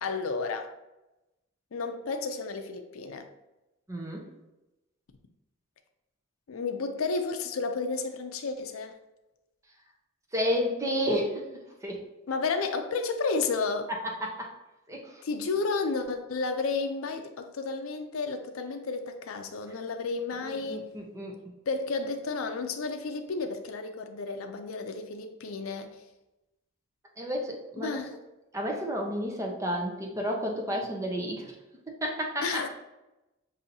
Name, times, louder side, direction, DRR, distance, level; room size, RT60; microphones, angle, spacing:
voice 1, 0.0-0.7 1.7-3.3 6.5-9.0 12.3-13.9 15.2-20.9 21.7-25.9 27.8-28.1 32.4-32.7, left 4 dB, 80° left, 6 dB, 0.5 m, -32 dB
voice 2, 3.9-4.2 10.3-11.5 11.8-12.0 14.2-14.5 14.9-15.2 20.4-21.4 27.2-28.0 28.5-31.5 32.0-32.6, equal, 15° right, 0 dB, 0.7 m, -31 dB
6.7 x 2.7 x 2.7 m, 0.98 s
head